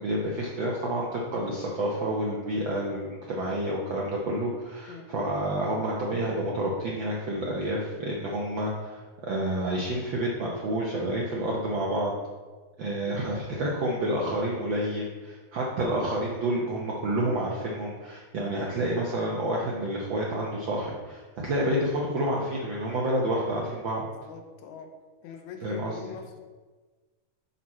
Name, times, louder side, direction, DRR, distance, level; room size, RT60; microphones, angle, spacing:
voice 1, 0.0-12.1 12.8-24.0 25.6-26.1, right 1 dB, 90° right, -3 dB, 1.0 m, -29 dB
voice 2, 24.1-24.9 25.2-26.4, left 7 dB, 80° left, 5 dB, 2.1 m, -43 dB
10.5 x 4.2 x 4.2 m, 1.3 s
omnidirectional pair, 3.4 m